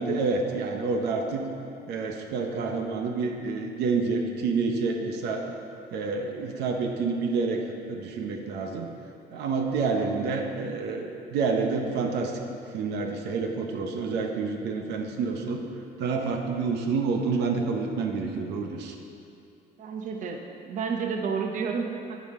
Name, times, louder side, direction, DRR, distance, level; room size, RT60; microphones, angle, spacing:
voice 1, 0.0-1.5 1.9-5.5 5.9-7.6 7.9-8.9 9.3-12.3 12.7-15.6 16.0-18.9, right 4 dB, 80° right, 3 dB, 0.8 m, -28 dB
voice 2, 19.8-22.2, right 5 dB, 50° right, 3 dB, 0.7 m, -31 dB
9.1 x 8.3 x 3.7 m, 2.6 s
cardioid pair, 110°, 17 cm